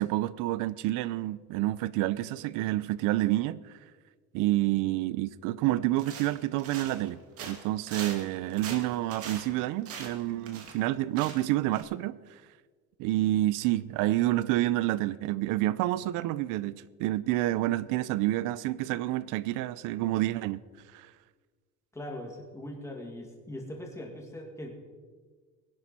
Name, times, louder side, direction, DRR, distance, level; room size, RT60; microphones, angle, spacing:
voice 1, 0.0-3.7 4.3-12.4 13.0-20.6 20.9-21.1, right 16 dB, 80° right, 0.6 m, -29 dB
sound 1, 6.0-7.1 7.4-10.9 11.2-11.5 11.7-11.8, right 6 dB, 50° right, 2.1 m, -41 dB
voice 2, 21.9-24.7, left 1 dB, 10° left, 2.2 m, -40 dB
20.5 x 11.5 x 4.3 m
cardioid pair, 165°, 31 cm